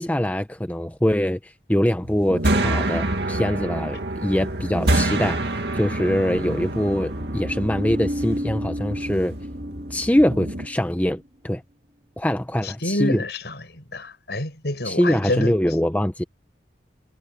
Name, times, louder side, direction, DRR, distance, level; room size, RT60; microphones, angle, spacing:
voice 1, 0.0-5.4 5.7-9.3 9.9-11.6 12.2-13.2 14.8-16.2, equal, 10° left, 0.8 m, -23 dB
sound 1, 2.0-10.7, right 1 dB, 70° right, 2.5 m, -27 dB
sound 2, 7.1-11.3, equal, 40° right, 2.4 m, -32 dB
voice 2, 12.6-15.5, left 1 dB, 65° left, 5.6 m, -28 dB
head